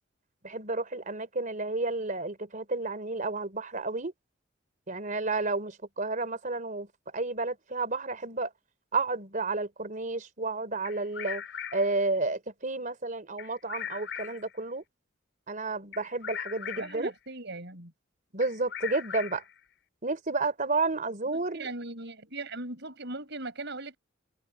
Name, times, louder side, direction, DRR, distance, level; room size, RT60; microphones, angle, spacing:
voice 1, 0.4-4.1 4.9-6.9 7.1-8.5 8.9-11.4 11.7-14.8 15.5-17.1 18.3-19.4 20.0-21.7, right 3 dB, 40° right, 3.7 m, -31 dB
Bird vocalization bird call bird song, 10.8-12.0 13.4-14.6 15.9-17.1 18.4-19.6, left 9 dB, 65° left, 7.3 m, -39 dB
voice 2, 16.8-17.9 21.3-24.0, right 2 dB, 60° right, 6.3 m, -39 dB
head